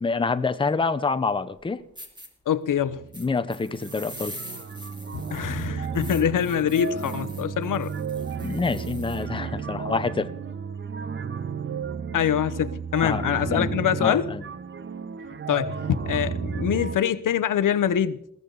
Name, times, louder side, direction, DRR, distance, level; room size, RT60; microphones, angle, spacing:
voice 1, 0.0-1.8 3.2-4.4 8.4-10.3 13.0-13.8 14.0-14.4, left 4 dB, 15° left, 0.6 m, -27 dB
sound 1, 1.5-1.6 2.0-2.3 3.1-9.3, equal, 15° right, 2.5 m, -43 dB
voice 2, 2.5-3.0 5.1-7.9 12.1-14.3 15.5-18.2, left 9 dB, 75° left, 0.9 m, -24 dB
sound 2, 2.8-3.3 3.5-17.0, right 6 dB, 35° right, 0.7 m, -33 dB
21.0 x 15.0 x 3.9 m
wide cardioid pair, 155°, 32 cm